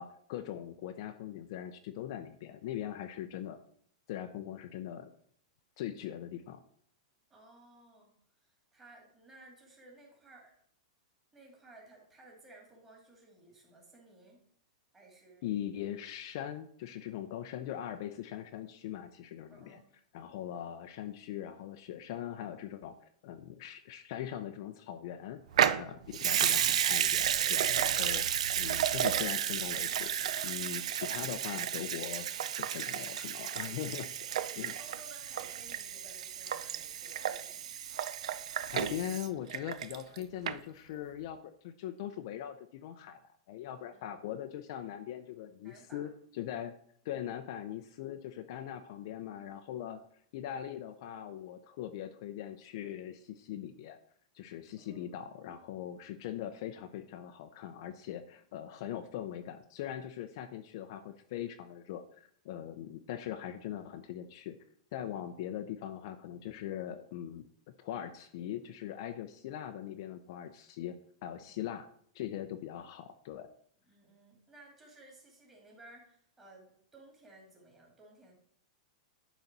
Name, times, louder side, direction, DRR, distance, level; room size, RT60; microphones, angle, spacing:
voice 1, 0.0-3.6 4.1-5.1 5.8-6.6 15.4-19.8 20.1-22.9 23.2-25.4 25.8-30.1 30.4-32.3 32.6-34.3 34.6-34.7 38.7-41.4 41.6-43.2 43.5-46.7 47.0-50.0 50.3-54.0 54.3-64.6 64.9-67.4 67.8-71.0 71.2-71.9 72.1-73.5, left 11 dB, 45° left, 8 dB, 0.5 m, -41 dB
voice 2, 7.3-8.1 8.7-10.6 11.3-14.4 14.9-15.5 19.5-19.9 34.3-37.7 43.9-44.2 45.6-46.1 47.1-47.2 54.8-55.1 71.4-71.5 73.9-78.3, right 2 dB, 10° right, -1 dB, 2.3 m, -57 dB
Water tap faucet / Sink (filling or washing) / Liquid, 25.5-40.2 40.5-40.6, right 10 dB, 80° right, 0.5 m, -32 dB
10.5 x 4.0 x 5.9 m, 0.63 s
supercardioid pair, 170°, 3 cm